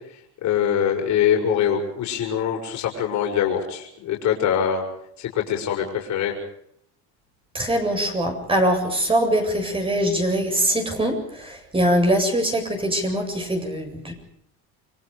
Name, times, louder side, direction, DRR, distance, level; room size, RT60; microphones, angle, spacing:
voice 1, 0.4-4.8 5.2-6.3, left 8 dB, 65° left, 1 dB, 6.5 m, -23 dB
voice 2, 7.5-14.1, right 1 dB, 15° right, 3 dB, 7.7 m, -22 dB
30.0 x 23.5 x 5.2 m, 0.70 s
cardioid pair, 115°, 31 cm